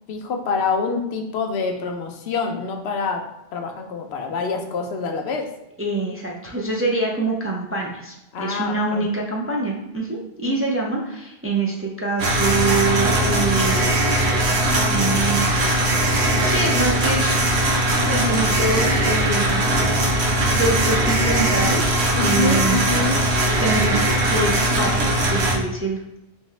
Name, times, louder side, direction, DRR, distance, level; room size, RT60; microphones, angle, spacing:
voice 1, 0.1-3.2 3.5-5.5 8.3-9.1 10.4-10.6 22.1-23.2, left 4 dB, 80° left, 4 dB, 0.9 m, -26 dB
voice 2, 5.8-13.9 14.6-15.8 16.4-17.4 18.1-19.6 19.9-23.2 23.6-26.0, right 3 dB, 20° right, -2 dB, 0.4 m, -25 dB
sound 1, 12.2-25.6, right 1 dB, 85° right, 1.0 m, -20 dB
3.5 x 3.3 x 3.1 m, 0.89 s
omnidirectional pair, 1.1 m